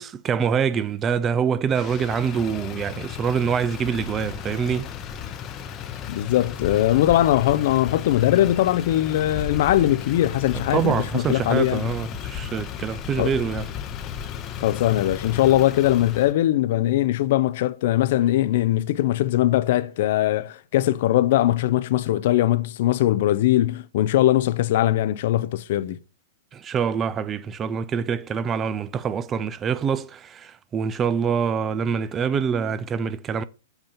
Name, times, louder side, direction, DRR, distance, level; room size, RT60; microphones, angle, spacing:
voice 1, 0.0-4.9 10.7-13.7 26.5-33.4, right 7 dB, 25° right, 0.4 m, -25 dB
Motor vehicle (road), 1.7-16.3, left 8 dB, 30° left, 0.8 m, -34 dB
voice 2, 6.1-11.9 13.2-13.3 14.6-26.0, left 13 dB, 60° left, 0.5 m, -21 dB
8.0 x 2.8 x 5.2 m
hypercardioid pair, 125°, 0 cm